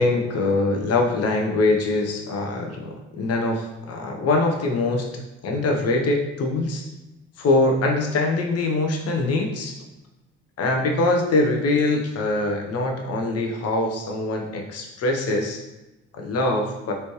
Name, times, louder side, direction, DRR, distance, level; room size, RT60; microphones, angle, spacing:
voice 1, 0.0-6.9 7.4-9.8 10.6-15.6 16.1-16.9, left 2 dB, 45° left, 2 dB, 0.9 m, -23 dB
4.3 x 3.2 x 3.1 m, 1.0 s
figure-of-eight pair, 50°, 33 cm